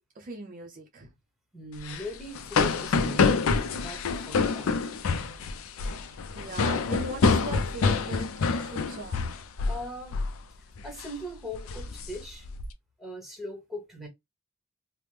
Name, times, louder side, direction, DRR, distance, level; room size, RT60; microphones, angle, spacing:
voice 1, 0.2-1.1 6.0-9.3, right 2 dB, 40° right, 0.5 m, -40 dB
voice 2, 1.5-3.4 3.7-4.9 9.7-10.2 10.8-12.5 13.0-14.1, left 1 dB, ahead, 1.0 m, -40 dB
sound 1, 1.8-9.8 10.1-10.4 10.8-11.1 11.5-12.7, left 4 dB, 70° left, 0.4 m, -27 dB
3.3 x 2.0 x 3.1 m
head